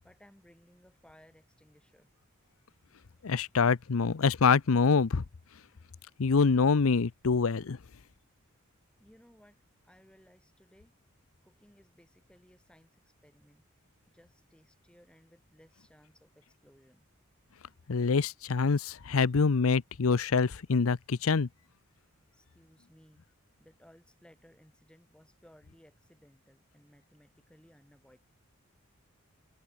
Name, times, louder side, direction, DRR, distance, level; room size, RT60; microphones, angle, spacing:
voice 1, 0.0-2.1 9.0-10.9 11.4-13.6 14.1-17.1 22.3-23.2 23.6-28.2, equal, 5° left, 4.8 m, -61 dB
voice 2, 3.2-5.2 6.2-7.8 17.9-21.5, left 5 dB, 80° left, 0.6 m, -25 dB
open air
head